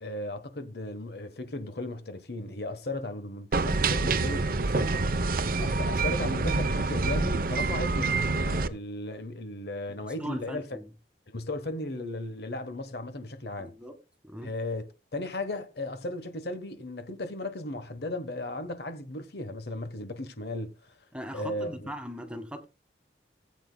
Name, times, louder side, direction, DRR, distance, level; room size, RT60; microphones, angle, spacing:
voice 1, 0.0-10.8 11.3-13.7 14.4-20.7 21.3-21.9, left 2 dB, 60° left, 1.1 m, -36 dB
sound 1, 3.5-8.7, right 3 dB, 50° right, 0.7 m, -27 dB
voice 2, 9.9-10.9 13.6-14.0 14.2-14.5 21.1-22.6, equal, 5° right, 1.4 m, -39 dB
18.5 x 8.4 x 2.2 m
head